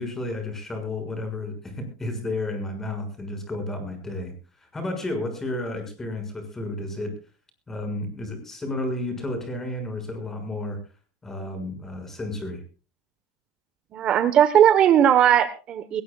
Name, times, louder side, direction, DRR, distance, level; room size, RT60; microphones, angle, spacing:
voice 1, 0.0-4.3 4.6-7.1 7.7-10.8 11.2-12.6, left 2 dB, 15° left, 7 dB, 6.4 m, -32 dB
voice 2, 13.9-16.0, right 10 dB, 40° right, 11 dB, 1.2 m, -18 dB
21.5 x 19.0 x 2.4 m, 0.33 s
supercardioid pair, 135°, 3 cm